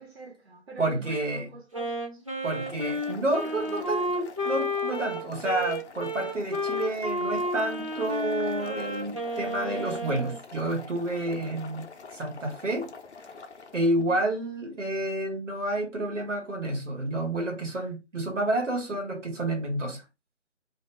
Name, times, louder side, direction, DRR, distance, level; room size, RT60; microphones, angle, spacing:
voice 1, 0.0-2.3 3.4-4.0 14.1-14.2, right 3 dB, 55° right, 1.2 m, -46 dB
voice 2, 0.8-1.5 2.4-11.8 12.1-12.9 13.7-20.0, right 1 dB, 75° right, 1.3 m, -29 dB
Wind instrument woodwind instrument, 1.7-10.4, left 1 dB, 30° right, 0.4 m, -31 dB
Boiling, 2.5-14.0, left 4 dB, 65° left, 0.6 m, -46 dB
2.5 x 2.2 x 3.2 m
figure-of-eight pair, 160°, 37 cm